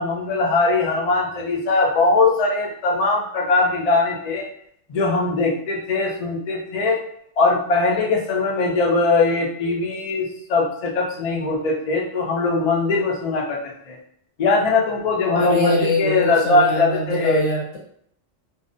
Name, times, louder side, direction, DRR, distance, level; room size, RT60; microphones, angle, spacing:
voice 1, 0.0-4.5 4.9-7.0 7.4-14.0 14.4-17.4, left 3 dB, 60° left, -1 dB, 0.4 m, -20 dB
voice 2, 15.3-17.8, left 2 dB, 85° left, -3 dB, 1.2 m, -23 dB
2.5 x 2.0 x 2.5 m, 0.67 s
omnidirectional pair, 1.3 m